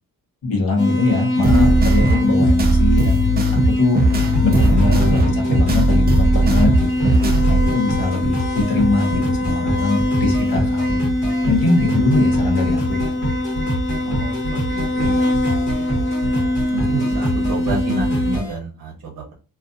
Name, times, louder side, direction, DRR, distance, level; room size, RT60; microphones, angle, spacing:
voice 1, 0.4-4.0 4.4-6.9 7.5-11.1 11.5-13.1, left 3 dB, 80° left, 2 dB, 0.9 m, -22 dB
sound 1, 0.8-18.4, left 1 dB, 40° left, 0.6 m, -22 dB
sound 2, 1.4-7.7, right 2 dB, 30° right, 0.4 m, -17 dB
sound 3, 4.3-18.5, right 1 dB, 55° left, 1.2 m, -26 dB
voice 2, 14.0-15.3 15.7-15.9 16.7-19.3, right 3 dB, 65° right, -1 dB, 0.7 m, -29 dB
2.5 x 2.4 x 2.5 m, 0.34 s
wide cardioid pair, 160°, 34 cm